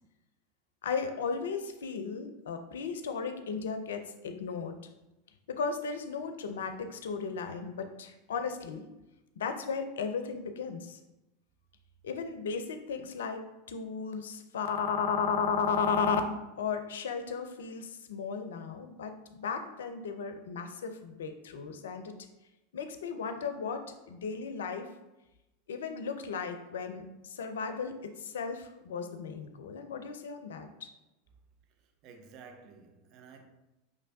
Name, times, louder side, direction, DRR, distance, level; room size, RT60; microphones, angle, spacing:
voice 1, 0.8-4.8 5.5-8.9 9.4-11.0 12.0-16.2 16.6-22.1 22.7-24.9 25.7-30.9, left 5 dB, 75° left, 0.4 m, -35 dB
voice 2, 32.0-33.5, right 5 dB, 50° right, 0.6 m, -52 dB
5.1 x 3.2 x 2.6 m
hypercardioid pair, 90°, 0 cm